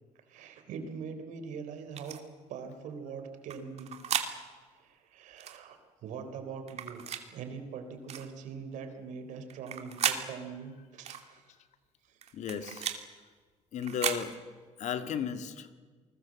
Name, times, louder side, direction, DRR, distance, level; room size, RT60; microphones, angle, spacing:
voice 1, 0.3-2.2 2.5-4.0 4.7-7.0 7.3-11.5 12.0-12.2, right 6 dB, 75° right, 8 dB, 3.8 m, -42 dB
sound 1, 1.9-2.2 3.5-4.3 5.4-5.6 6.7-7.2 8.1-8.3 9.5-10.2 11.0-11.2 12.2-13.0 13.8-14.2, right 8 dB, 55° right, 2.6 m, -34 dB
voice 2, 12.3-12.9 13.7-14.3 14.8-15.7, left 8 dB, 65° left, 9 dB, 2.0 m, -34 dB
28.5 x 20.5 x 7.7 m, 1.5 s
cardioid pair, 110°, 13 cm